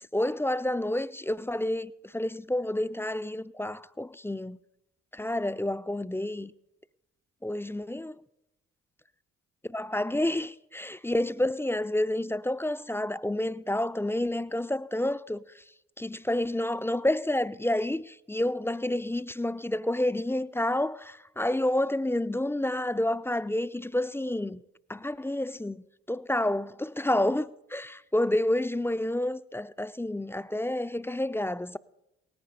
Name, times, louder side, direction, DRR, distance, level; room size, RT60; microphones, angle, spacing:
voice 1, 0.1-4.6 5.1-6.5 7.4-8.1 9.7-15.4 16.0-24.6 24.9-31.8, left 1 dB, 5° left, 0.5 m, -29 dB
18.5 x 10.5 x 5.1 m
hypercardioid pair, 40°, 36 cm